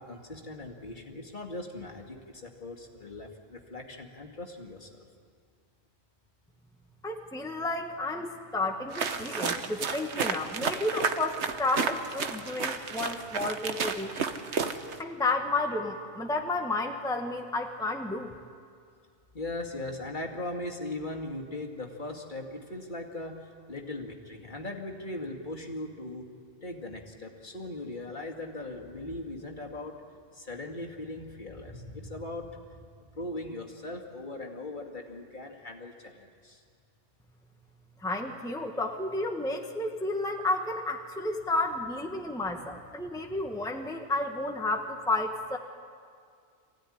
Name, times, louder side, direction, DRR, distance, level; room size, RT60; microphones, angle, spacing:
voice 1, 0.0-5.1 19.3-26.3 26.6-30.0 30.3-36.6, left 2 dB, 45° left, 1 dB, 2.2 m, -39 dB
voice 2, 7.0-14.1 15.0-18.4 38.0-45.6, left 2 dB, 5° left, 3 dB, 1.1 m, -31 dB
sound 1, 8.9-15.0, right 5 dB, 85° right, 1.4 m, -32 dB
24.0 x 16.0 x 9.9 m, 2.2 s
omnidirectional pair, 1.1 m